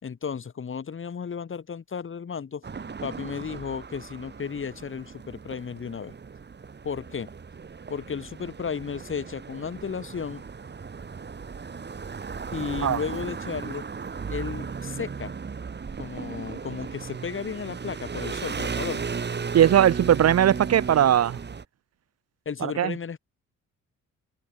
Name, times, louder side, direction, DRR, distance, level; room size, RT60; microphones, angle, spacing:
voice 1, 0.0-2.6 3.0-6.1 6.8-7.3 7.9-10.4 12.5-13.9 14.3-15.3 16.0-19.0 22.5-23.2, left 6 dB, 40° left, 4.4 m, -34 dB
sound 1, 2.6-21.6, right 5 dB, 35° right, 4.1 m, -36 dB
voice 2, 19.5-21.4 22.6-22.9, right 10 dB, 55° right, 1.1 m, -19 dB
cardioid pair, 90°, 30 cm